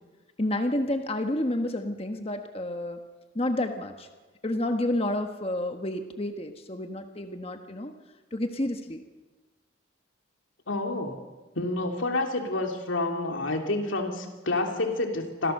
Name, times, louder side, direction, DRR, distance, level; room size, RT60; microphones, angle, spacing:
voice 1, 0.4-3.0 3.3-4.1 4.4-7.9 8.3-9.0, left 1 dB, 30° left, 6 dB, 1.3 m, -30 dB
voice 2, 10.7-11.2 11.5-15.5, left 2 dB, 85° left, 3 dB, 3.0 m, -28 dB
26.5 x 16.5 x 6.7 m, 1.3 s
head